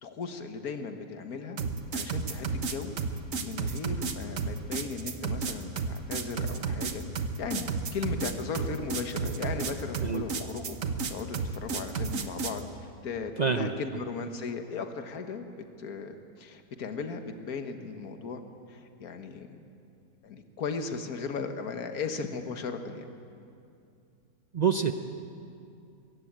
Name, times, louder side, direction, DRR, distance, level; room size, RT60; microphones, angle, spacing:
voice 1, 0.0-1.6 1.9-7.0 7.4-10.8 11.1-15.5 15.8-18.4 18.7-19.6 20.2-23.1, left 5 dB, 60° left, 6 dB, 1.8 m, -37 dB
sound 1, 1.6-12.6, right 5 dB, 55° right, 1.4 m, -32 dB
voice 2, 13.4-13.7 24.5-24.9, right 6 dB, 80° right, 7 dB, 0.3 m, -26 dB
22.5 x 16.5 x 8.8 m, 2.5 s
omnidirectional pair, 1.8 m